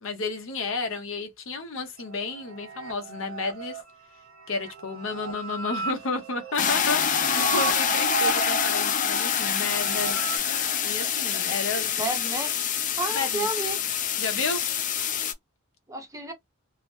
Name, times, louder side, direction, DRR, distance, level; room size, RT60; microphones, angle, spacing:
voice 1, 0.0-3.8 4.5-10.2 10.8-11.9 13.1-13.5 14.2-14.6, left 3 dB, 65° left, 0.8 m, -32 dB
sound 1, 2.0-10.4, right 4 dB, 90° right, 1.2 m, -35 dB
sound 2, 6.5-15.3, left 8 dB, 40° left, 0.4 m, -26 dB
voice 2, 11.9-12.5 13.0-13.8 15.9-16.3, right 2 dB, 15° right, 0.6 m, -31 dB
2.9 x 2.0 x 3.0 m
head